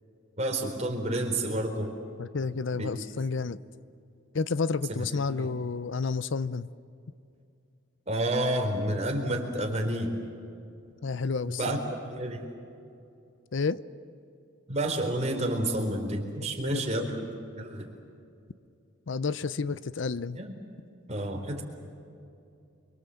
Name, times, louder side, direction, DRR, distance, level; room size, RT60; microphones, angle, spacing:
voice 1, 0.4-1.9 2.7-3.0 4.9-5.5 8.1-10.2 11.5-11.8 12.0-12.4 14.7-17.3 17.6-17.9 20.3-20.5 21.1-21.6, right 1 dB, 35° right, 2 dB, 4.0 m, -30 dB
voice 2, 2.2-3.6 4.3-6.7 11.0-11.8 13.5-13.8 16.6-17.1 19.1-20.4, left 4 dB, 65° left, 16 dB, 0.6 m, -30 dB
29.0 x 23.5 x 7.8 m, 2.6 s
head